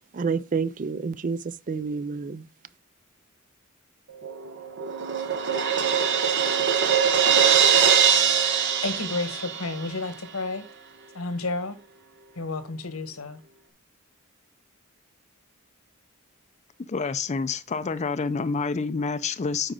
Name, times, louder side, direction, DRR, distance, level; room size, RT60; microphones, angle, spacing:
voice 1, 0.1-2.5, right 5 dB, 40° right, 0.4 m, -29 dB
Crash cymbal, 4.2-9.9, right 7 dB, 60° right, 1.0 m, -22 dB
voice 2, 8.8-10.6 11.1-11.8 12.4-13.4, left 3 dB, 90° left, 1.3 m, -31 dB
voice 3, 16.9-19.7, left 4 dB, 35° left, 0.4 m, -28 dB
9.0 x 5.0 x 3.7 m
head